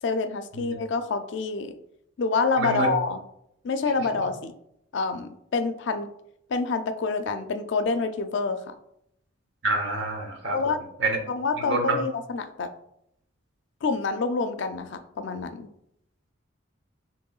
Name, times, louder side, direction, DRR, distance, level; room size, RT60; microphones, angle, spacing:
voice 1, 0.0-1.7 2.2-3.2 3.6-4.5 4.9-6.1 6.5-8.7 10.5-10.8 11.3-12.7 13.8-15.7, left 4 dB, 60° left, 9 dB, 0.4 m, -27 dB
voice 2, 2.6-2.9 9.6-10.6 11.0-11.2 11.6-11.9, right 2 dB, 60° right, 3 dB, 0.9 m, -27 dB
6.4 x 3.0 x 2.3 m, 0.77 s
head